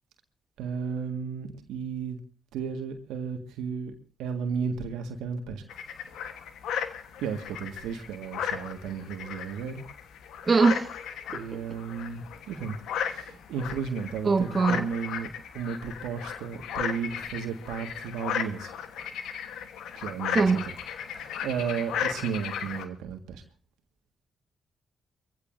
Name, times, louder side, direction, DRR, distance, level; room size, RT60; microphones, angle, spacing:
voice 1, 0.6-2.2 2.5-3.9 4.2-5.6 7.2-9.8 11.3-18.8 19.9-20.7 21.2-23.4, right 6 dB, 80° right, 1.8 m, -34 dB
sound 1, 5.7-22.9, left 8 dB, 75° left, 1.2 m, -36 dB
voice 2, 10.4-10.9 11.3-11.6 14.2-14.8 20.3-20.6, right 4 dB, 40° right, 1.4 m, -22 dB
24.0 x 15.5 x 2.7 m
hypercardioid pair, 40°, 0 cm